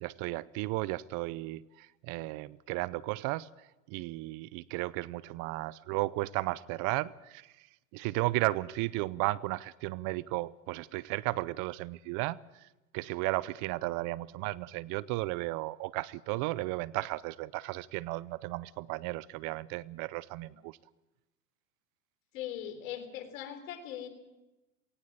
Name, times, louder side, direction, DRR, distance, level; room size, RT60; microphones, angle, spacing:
voice 1, 0.0-3.5 3.9-7.5 7.9-12.7 12.9-20.8, right 20 dB, 45° right, 20 dB, 0.6 m, -34 dB
voice 2, 22.3-24.1, left 10 dB, 65° left, 7 dB, 3.9 m, -40 dB
18.5 x 17.5 x 8.5 m, 1.0 s
hypercardioid pair, 110°, 44 cm